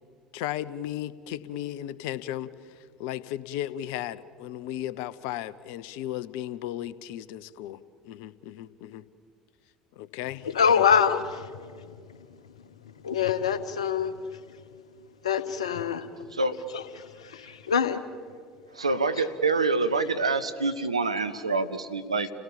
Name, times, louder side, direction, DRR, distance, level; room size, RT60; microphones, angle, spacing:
voice 1, 0.3-9.1 10.0-10.8, left 12 dB, 65° left, 17 dB, 0.8 m, -35 dB
voice 2, 10.4-14.7 15.2-16.3 16.7-18.0 19.2-19.3, left 7 dB, 80° left, 12 dB, 1.1 m, -27 dB
voice 3, 18.7-22.3, right 3 dB, 90° right, 10 dB, 0.9 m, -26 dB
30.0 x 17.5 x 7.4 m, 2.1 s
figure-of-eight pair, 65°, 3 cm